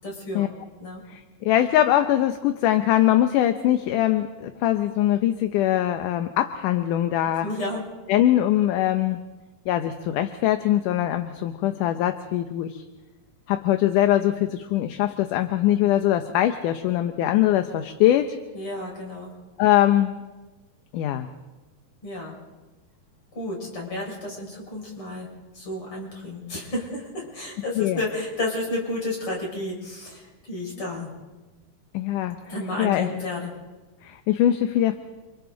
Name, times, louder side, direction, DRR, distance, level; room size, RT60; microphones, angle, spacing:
voice 1, 0.0-0.5 0.8-1.0 7.4-7.8 18.5-19.3 22.0-22.4 23.3-25.3 25.5-31.1 32.4-33.5, left 2 dB, 35° left, -2 dB, 6.9 m, -31 dB
voice 2, 1.1-7.5 8.1-9.2 9.7-12.8 13.5-18.4 19.6-20.1 20.9-21.3 27.8-28.0 31.9-32.4 32.8-33.1 34.0-35.0, left 12 dB, 75° left, 8 dB, 2.2 m, -22 dB
29.0 x 26.0 x 3.9 m, 1.2 s
omnidirectional pair, 4.1 m